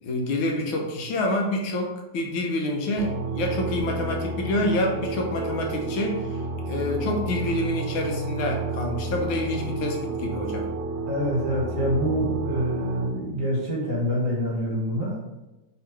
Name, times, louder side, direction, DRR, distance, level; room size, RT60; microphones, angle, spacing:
voice 1, 0.0-6.4 6.7-10.7, left 1 dB, 80° left, 1 dB, 1.5 m, -27 dB
sound 1, 3.0-13.1, right 2 dB, 75° right, 1.0 m, -31 dB
voice 2, 11.1-15.2, equal, 50° right, -5 dB, 1.3 m, -26 dB
3.5 x 2.9 x 4.5 m, 1.0 s
omnidirectional pair, 2.3 m